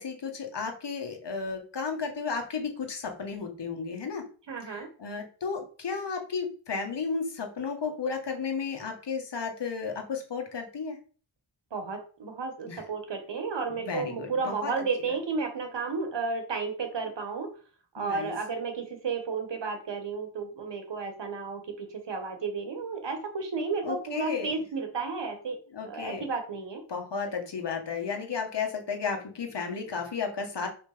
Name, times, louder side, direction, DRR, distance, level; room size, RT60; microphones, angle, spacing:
voice 1, 0.0-4.2 4.6-11.0 12.7-12.8 13.8-14.9 18.0-18.3 23.8-24.5 25.7-26.2 26.9-30.7, left 5 dB, 55° left, 3 dB, 1.8 m, -33 dB
voice 2, 4.5-4.9 11.7-17.5 17.9-25.6 25.9-26.8, right 4 dB, 60° right, 6 dB, 1.8 m, -33 dB
5.9 x 5.5 x 5.2 m, 0.40 s
wide cardioid pair, 155°, 49 cm